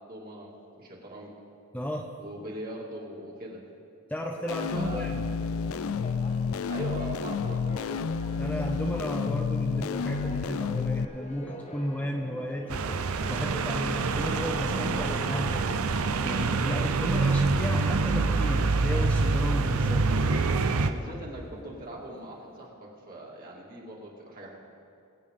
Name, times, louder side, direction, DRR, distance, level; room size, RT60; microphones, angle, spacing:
voice 1, 0.1-0.5 0.8-1.3 2.2-3.6 4.7-5.1 6.7-8.0 20.8-24.6, right 1 dB, 45° right, -3 dB, 2.3 m, -41 dB
voice 2, 1.7-2.1 4.1-5.3 8.4-12.8 13.3-15.9 16.2-20.0, equal, 5° left, 1 dB, 0.6 m, -33 dB
Church bell, 4.3-22.7, left 1 dB, 30° left, 1.0 m, -46 dB
sound 1, 4.5-11.0, left 5 dB, 70° left, 0.4 m, -30 dB
sound 2, 12.7-20.9, right 3 dB, 75° right, 0.6 m, -26 dB
23.5 x 8.2 x 3.7 m, 2.5 s
head